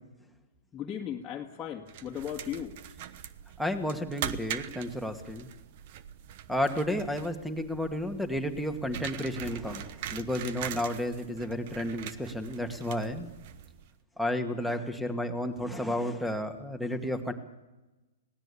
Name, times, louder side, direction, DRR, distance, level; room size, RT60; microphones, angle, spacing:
voice 1, 0.7-2.8, left 9 dB, 20° left, -3 dB, 1.9 m, -36 dB
sound 1, 1.9-13.9, right 10 dB, 50° right, 1.1 m, -42 dB
voice 2, 3.6-5.5 6.5-13.3 14.2-17.3, left 1 dB, ahead, 9 dB, 2.1 m, -32 dB
24.5 x 17.5 x 8.6 m, 1.1 s
hypercardioid pair, 120°, 0 cm